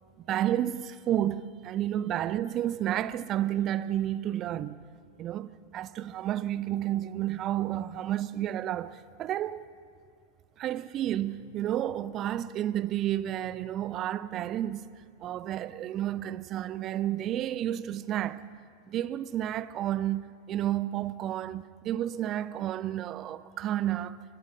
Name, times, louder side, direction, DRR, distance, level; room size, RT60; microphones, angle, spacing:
voice 1, 0.3-4.8 5.2-9.6 10.6-14.9 15.2-18.4 18.9-24.2, right 12 dB, 35° right, 0.6 m, -31 dB
24.0 x 19.5 x 6.5 m
figure-of-eight pair, 90°, 0 cm